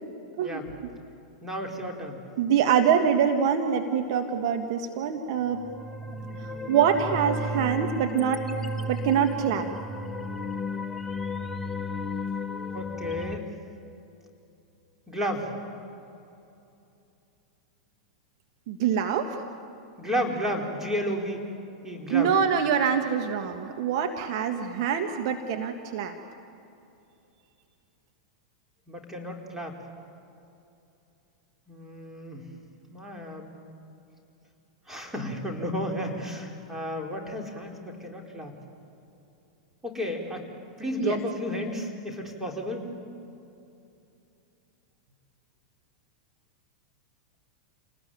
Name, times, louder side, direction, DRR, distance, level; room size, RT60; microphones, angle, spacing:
voice 1, 0.4-0.7 1.4-2.2 12.7-13.4 15.1-15.5 20.0-21.4 21.8-22.3 28.9-29.8 31.7-32.4 32.9-33.5 34.9-38.6 39.8-40.5 40.8-42.9, equal, 10° right, 1 dB, 4.6 m, -32 dB
voice 2, 2.4-5.6 6.7-8.4 8.9-9.7 18.7-19.4 22.1-26.1 41.0-41.2, right 8 dB, 55° right, 5 dB, 1.6 m, -25 dB
sound 1, 5.5-13.4, left 1 dB, 15° left, 1.4 m, -33 dB
28.5 x 19.0 x 9.3 m, 2.8 s
figure-of-eight pair, 95°, 3 cm